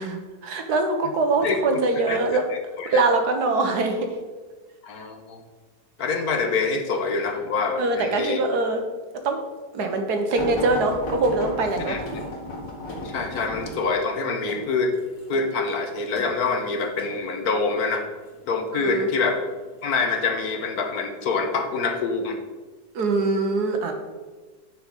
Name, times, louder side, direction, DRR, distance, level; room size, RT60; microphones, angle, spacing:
voice 1, 0.0-2.4 2.8-4.1 7.8-8.8 9.2-9.4 9.7-12.0 18.7-19.1 22.9-23.9, right 3 dB, 65° right, 5 dB, 1.4 m, -23 dB
voice 2, 2.1-2.4 2.8-3.0 4.8-5.4 6.0-8.4 11.9-12.0 13.0-14.9 15.3-18.0 18.5-19.4 19.8-22.4, left 4 dB, 65° left, 5 dB, 1.2 m, -25 dB
sound 1, 10.3-17.2 17.9-18.4 19.3-19.9 20.7-20.9 21.2-21.3, left 1 dB, 80° left, 2.7 m, -34 dB
9.2 x 4.8 x 5.1 m, 1.3 s
omnidirectional pair, 1.9 m